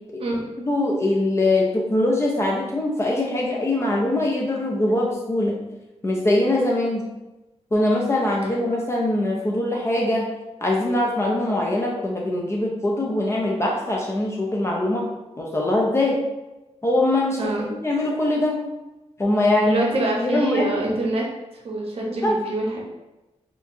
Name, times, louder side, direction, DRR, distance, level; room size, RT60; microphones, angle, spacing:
voice 1, 0.7-5.5 6.0-7.0 7.7-10.3 10.6-15.1 15.4-16.2 16.8-18.6 19.2-19.8 20.2-20.8 22.1-22.4, left 1 dB, 25° left, -3 dB, 0.5 m, -22 dB
voice 2, 19.6-21.3 21.6-22.8, right 2 dB, 60° right, -2 dB, 0.8 m, -25 dB
4.3 x 2.4 x 2.6 m, 1.0 s
wide cardioid pair, 130°, 11 cm